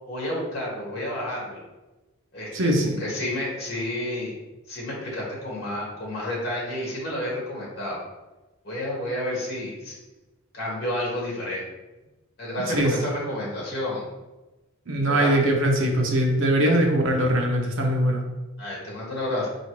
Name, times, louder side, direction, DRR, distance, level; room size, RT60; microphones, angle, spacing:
voice 1, 0.1-1.6 2.3-2.5 3.0-4.3 4.7-8.0 8.6-10.0 10.5-11.6 12.4-14.1 15.1-15.4 16.6-16.7 18.6-19.5, left 1 dB, 50° left, -4 dB, 1.3 m, -30 dB
voice 2, 2.5-3.0 12.7-12.9 14.9-18.2, right 1 dB, 70° right, 1 dB, 0.7 m, -21 dB
4.4 x 2.6 x 3.0 m, 1.1 s
head